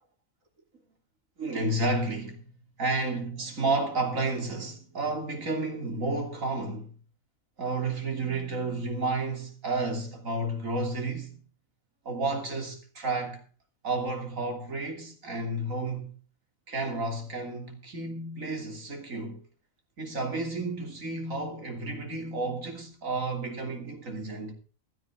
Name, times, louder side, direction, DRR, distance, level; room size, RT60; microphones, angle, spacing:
voice 1, 1.4-2.4 2.8-6.9 7.6-11.4 12.1-13.4 13.8-16.1 16.7-19.4 20.0-24.5, right 2 dB, 80° right, 3.4 m, -31 dB
16.0 x 12.5 x 3.6 m
omnidirectional pair, 1.4 m